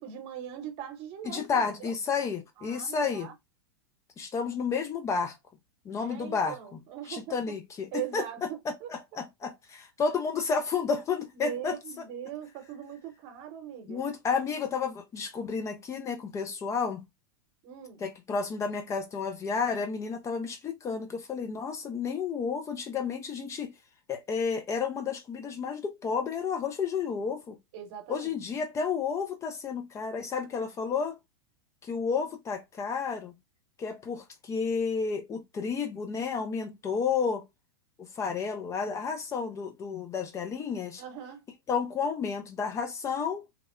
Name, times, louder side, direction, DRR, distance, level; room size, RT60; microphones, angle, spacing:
voice 1, 0.0-2.0 2.6-3.3 5.9-7.6 7.9-8.9 11.3-14.0 17.6-18.0 27.7-28.4 41.0-41.4, right 10 dB, 50° right, 0.9 m, -40 dB
voice 2, 1.2-3.3 4.2-5.4 5.8-6.6 7.1-8.2 8.9-11.8 13.9-17.0 18.0-23.7 24.1-27.6 28.1-31.2 31.8-33.3 33.8-37.4 38.0-41.0 41.7-43.5, left 5 dB, 25° left, 0.6 m, -31 dB
2.9 x 2.0 x 2.4 m
hypercardioid pair, 100°, 12 cm